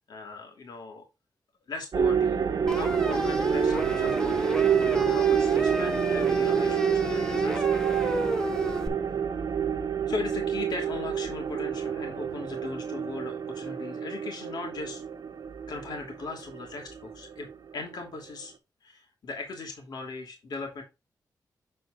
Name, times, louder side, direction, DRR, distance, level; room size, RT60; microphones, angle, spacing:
voice 1, 0.1-1.0 1.7-9.2 10.1-15.0 15.7-18.5 18.8-20.8, left 3 dB, 70° left, 1 dB, 2.7 m, -39 dB
sound 1, 1.9-18.4, right 7 dB, 65° right, 1.1 m, -28 dB
sound 2, 2.7-8.9, equal, 10° left, 1.2 m, -32 dB
7.8 x 7.1 x 2.4 m, 0.25 s
wide cardioid pair, 130°, 7 cm